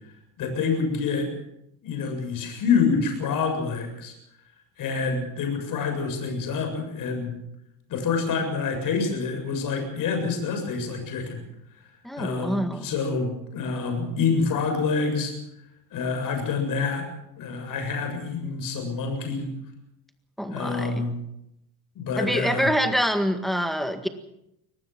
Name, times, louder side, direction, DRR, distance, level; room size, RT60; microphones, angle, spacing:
voice 1, 0.4-1.3 1.8-4.1 4.8-7.3 7.9-11.4 12.2-15.3 15.9-17.1 17.4-19.5 20.5-21.1 22.0-22.7, left 5 dB, 50° left, 5 dB, 7.5 m, -27 dB
voice 2, 12.0-12.9 20.4-21.0 22.2-24.1, equal, ahead, 7 dB, 1.8 m, -26 dB
24.5 x 18.5 x 6.1 m, 0.81 s
cardioid pair, 135°, 42 cm